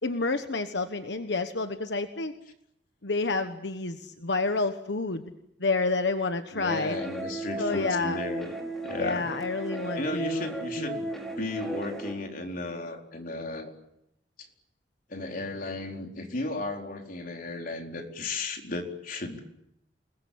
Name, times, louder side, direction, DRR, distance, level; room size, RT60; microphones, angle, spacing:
voice 1, 0.0-2.3 3.0-5.3 5.6-7.0 7.6-8.2 9.0-11.0, left 3 dB, 85° left, 8 dB, 1.3 m, -29 dB
voice 2, 6.5-8.5 8.8-9.3 9.9-11.1 11.4-13.7 15.1-19.4, left 2 dB, 55° left, 2 dB, 4.4 m, -34 dB
sound 1, 6.7-12.1, right 2 dB, ahead, 5.2 m, -35 dB
29.0 x 21.0 x 8.6 m, 0.80 s
head